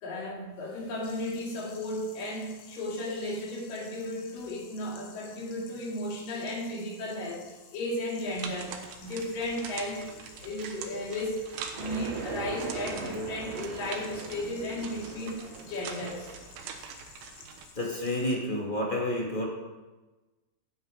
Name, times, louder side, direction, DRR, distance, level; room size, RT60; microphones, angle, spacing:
voice 1, 0.0-7.5 7.7-8.7 9.0-10.1 10.4-11.5 11.7-16.3, left 1 dB, 60° left, -2 dB, 3.8 m, -34 dB
sound 1, 1.0-18.3, left 6 dB, 75° left, 3.5 m, -53 dB
sound 2, 8.3-17.7, right 7 dB, 90° right, 3.4 m, -44 dB
sound 3, 11.8-16.3, right 5 dB, 70° right, 3.4 m, -40 dB
voice 2, 17.7-19.5, left 1 dB, 25° left, -2 dB, 1.1 m, -30 dB
16.5 x 8.8 x 5.2 m, 1.2 s
omnidirectional pair, 4.8 m